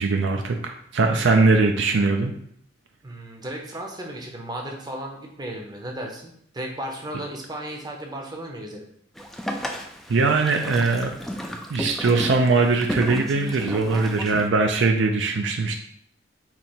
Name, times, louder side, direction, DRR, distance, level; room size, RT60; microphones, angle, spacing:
voice 1, 0.0-2.3 10.1-11.2 11.7-15.8, right 3 dB, 60° right, 4 dB, 0.5 m, -21 dB
voice 2, 3.0-8.9, right 1 dB, 20° right, 1 dB, 0.7 m, -35 dB
Boat Water vehicle, 9.2-14.5, equal, ahead, 0.3 m, -33 dB
4.3 x 2.8 x 4.3 m, 0.68 s
head